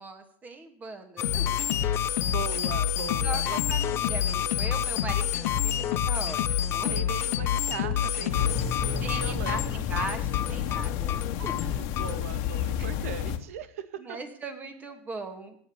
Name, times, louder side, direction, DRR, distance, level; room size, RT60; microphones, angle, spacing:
voice 1, 0.0-1.5 3.2-7.0 9.0-11.5 12.8-12.9 14.0-15.6, right 3 dB, 20° right, 6 dB, 2.6 m, -39 dB
sound 1, 1.2-8.7, left 9 dB, 90° left, 1.9 m, -29 dB
sound 2, 1.2-12.2, left 11 dB, 35° left, 0.6 m, -31 dB
voice 2, 1.9-3.9 6.9-9.7 11.4-11.5 11.8-14.2, right 8 dB, 85° right, 12 dB, 1.7 m, -39 dB
sound 3, 8.3-13.4, left 9 dB, 60° left, 1.8 m, -30 dB
17.5 x 7.2 x 9.8 m, 0.63 s
supercardioid pair, 135°, 7 cm